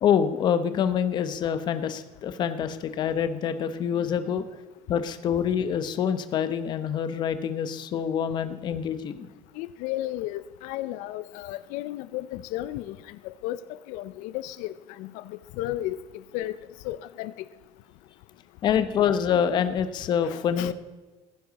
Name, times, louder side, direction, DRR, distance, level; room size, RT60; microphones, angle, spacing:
voice 1, 0.0-4.4 4.9-9.3 18.6-20.7, left 8 dB, 35° left, 11 dB, 0.8 m, -26 dB
voice 2, 9.6-13.6 13.9-16.0 16.3-16.6 16.8-17.3 20.2-20.7, left 15 dB, 80° left, 14 dB, 0.5 m, -34 dB
16.0 x 9.9 x 4.1 m, 1.3 s
cardioid pair, 180°, 13 cm